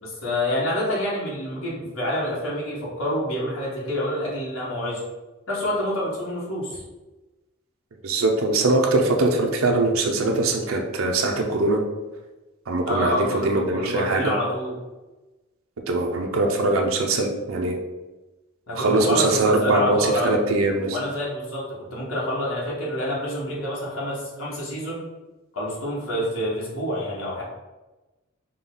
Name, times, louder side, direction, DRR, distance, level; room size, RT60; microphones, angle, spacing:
voice 1, 0.0-5.0 5.5-6.8 12.9-14.7 18.7-20.4 20.9-25.0 25.5-27.4, left 1 dB, 80° left, -6 dB, 1.4 m, -27 dB
voice 2, 8.0-11.8 12.7-14.3 15.9-17.8 18.8-21.0, right 2 dB, 70° right, 2 dB, 0.5 m, -22 dB
5.3 x 2.3 x 3.8 m, 1.1 s
head